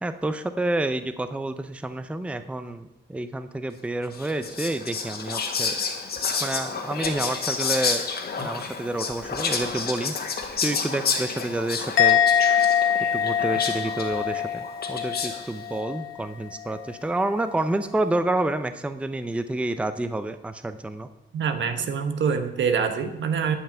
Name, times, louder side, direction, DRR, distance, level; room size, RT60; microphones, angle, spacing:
voice 1, 0.0-5.7 6.4-8.0 8.4-10.2 10.6-12.2 13.1-21.1, right 2 dB, 5° right, 10 dB, 0.5 m, -29 dB
Whispering, 4.1-15.5, left 5 dB, 55° left, 1.6 m, -30 dB
Musical instrument, 12.0-15.4 15.6-16.1, left 9 dB, 90° left, 1.2 m, -23 dB
voice 2, 21.3-23.6, right 6 dB, 75° right, 8 dB, 1.3 m, -25 dB
11.0 x 5.7 x 8.7 m, 0.96 s
wide cardioid pair, 130°, 19 cm